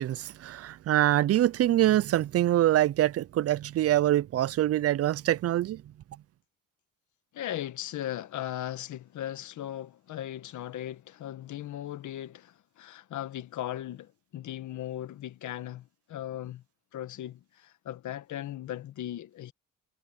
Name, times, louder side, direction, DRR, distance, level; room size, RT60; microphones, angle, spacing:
voice 1, 0.0-5.8, right 13 dB, 50° right, 0.5 m, -24 dB
voice 2, 7.3-16.6 16.9-19.5, left 12 dB, 75° left, 1.6 m, -38 dB
cardioid pair, 90°, 30 cm